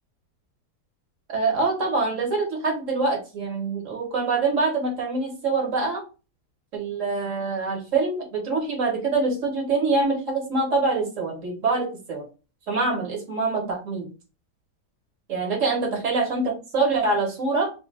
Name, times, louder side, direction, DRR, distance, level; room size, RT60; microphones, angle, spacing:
voice 1, 1.3-6.0 6.7-12.3 12.7-14.1 15.3-17.7, right 3 dB, 50° right, 0 dB, 1.6 m, -25 dB
4.3 x 2.5 x 3.3 m, 0.32 s
omnidirectional pair, 1.8 m